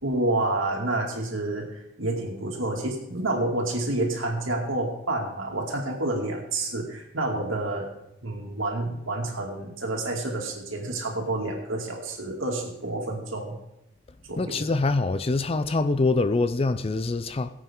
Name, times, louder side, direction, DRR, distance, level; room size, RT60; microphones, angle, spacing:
voice 1, 0.0-7.9 8.2-13.6 14.3-14.6, right 2 dB, 65° right, 2.6 m, -29 dB
voice 2, 14.4-17.5, left 3 dB, 30° left, 0.4 m, -24 dB
19.0 x 8.3 x 3.8 m
head